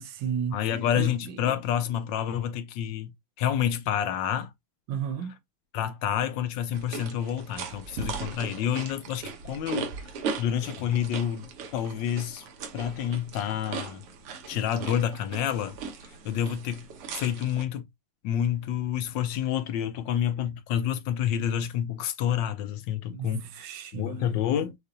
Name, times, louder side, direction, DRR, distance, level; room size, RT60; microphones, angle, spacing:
voice 1, 0.0-0.6 1.0-1.1 4.9-5.3 23.1-24.4, right 8 dB, 70° right, 1.3 m, -33 dB
voice 2, 0.5-3.1 3.4-4.5 5.7-9.9 10.4-12.5 12.7-14.0 14.5-15.8 16.0-16.9 17.1-17.9 18.2-23.5 23.9-24.8, left 10 dB, 70° left, 1.2 m, -28 dB
sound 1, 6.7-17.6, right 5 dB, 85° right, 2.0 m, -38 dB
6.5 x 2.4 x 2.7 m
omnidirectional pair, 2.4 m